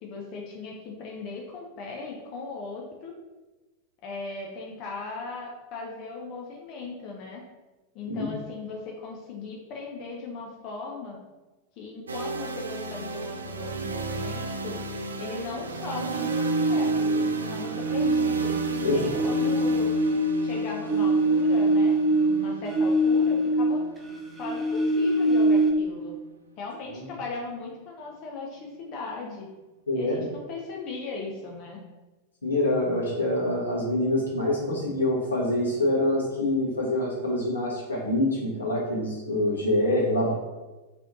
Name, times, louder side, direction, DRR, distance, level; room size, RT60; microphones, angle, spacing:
voice 1, 0.0-3.1 4.0-7.4 7.9-11.2 11.8-14.8 15.2-18.6 18.8-19.9 20.4-24.0 24.4-26.2 26.6-29.5 29.9-31.8, left 3 dB, 40° left, -1 dB, 0.6 m, -37 dB
sound 1, 12.1-25.9, right 3 dB, 70° right, 0.3 m, -35 dB
sound 2, 16.1-17.4 17.8-23.9 24.1-25.7, right 1 dB, 10° right, 0.7 m, -23 dB
voice 2, 18.8-19.2 26.9-27.1 29.9-30.3 32.4-40.3, left 1 dB, 75° left, -5 dB, 1.4 m, -26 dB
3.3 x 3.1 x 3.8 m, 1.2 s
figure-of-eight pair, 90°, 0 cm